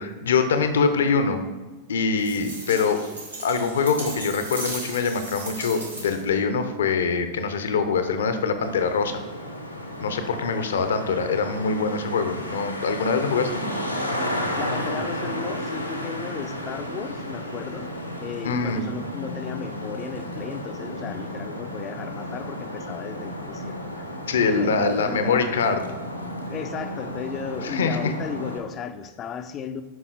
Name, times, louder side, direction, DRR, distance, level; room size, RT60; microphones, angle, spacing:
voice 1, 0.0-1.4 1.9-3.0 3.4-9.2 10.0-13.6 18.4-18.9 24.3-25.9 27.6-28.1, left 5 dB, 65° left, 9 dB, 0.8 m, -24 dB
sound 1, 2.2-6.4, right 2 dB, 85° right, 2.6 m, -36 dB
Traffic noise roadway noise, 8.6-28.6, equal, 85° left, 1.2 m, -33 dB
voice 2, 14.6-17.9 18.2-25.4 26.4-29.8, left 7 dB, 30° left, 10 dB, 0.6 m, -35 dB
9.4 x 5.6 x 4.1 m, 1.3 s
figure-of-eight pair, 90°, 0 cm